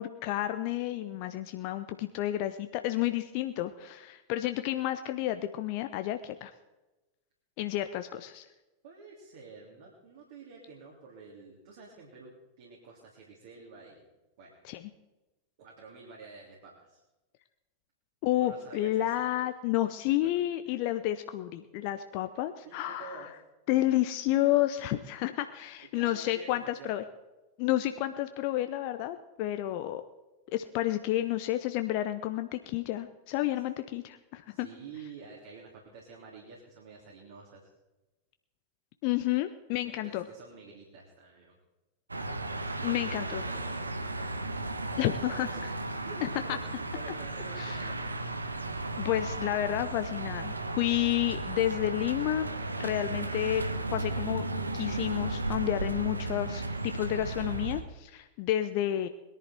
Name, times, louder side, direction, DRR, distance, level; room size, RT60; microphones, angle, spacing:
voice 1, 0.0-6.5 7.6-8.4 14.6-14.8 18.2-23.3 23.7-27.0 27.6-30.0 30.5-34.7 39.0-40.2 42.8-43.4 45.0-45.5 46.2-46.3 47.6-47.8 49.0-52.5 52.8-53.6 53.9-54.5 54.7-59.1, left 14 dB, 45° left, 9 dB, 0.7 m, -30 dB
voice 2, 8.8-14.0 14.4-14.6 15.6-17.0 18.4-19.5 22.6-23.3 25.9-27.0 34.5-37.7 39.9-41.6 42.8-46.2 46.4-48.1, right 4 dB, 55° right, -3 dB, 3.4 m, -49 dB
sound 1, 42.1-57.8, right 2 dB, 80° right, 1.1 m, -35 dB
21.5 x 11.0 x 4.5 m, 1.1 s
figure-of-eight pair, 90°, 0 cm